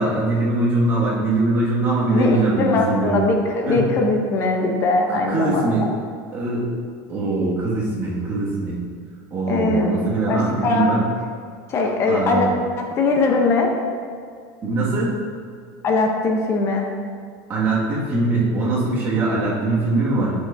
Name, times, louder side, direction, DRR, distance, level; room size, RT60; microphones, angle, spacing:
voice 1, 0.0-3.2 3.7-3.9 5.1-5.8 6.3-6.7 7.1-8.8 9.3-11.1 12.1-12.5 14.6-15.2 17.5-20.3, right 2 dB, 25° right, -7 dB, 1.9 m, -22 dB
voice 2, 2.1-5.7 9.5-10.9 11.7-12.5 12.8-13.7 15.8-16.9, left 3 dB, 30° left, 2 dB, 0.8 m, -21 dB
8.6 x 6.6 x 2.7 m, 2.1 s
supercardioid pair, 165°, 9 cm